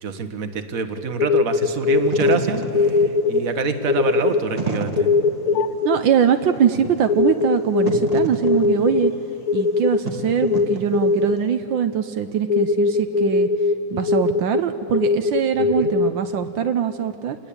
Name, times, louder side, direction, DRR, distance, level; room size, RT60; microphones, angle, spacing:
voice 1, 0.0-5.1 15.6-15.9, right 5 dB, 45° right, 8 dB, 1.8 m, -26 dB
sound 1, 1.0-2.5 2.7-3.4 3.7-4.4 5.0-6.0 7.1-9.1 9.5-10.0 10.4-11.5 12.5-13.8 14.1-14.6 14.9-16.1, left 4 dB, 55° left, 1.2 m, -20 dB
Wind / Fire, 1.9-11.4, right 3 dB, 20° right, 1.7 m, -32 dB
voice 2, 5.8-9.1 9.5-13.5 13.9-17.4, right 8 dB, 75° right, 8 dB, 1.5 m, -22 dB
28.5 x 20.0 x 8.7 m, 2.6 s
omnidirectional pair, 2.1 m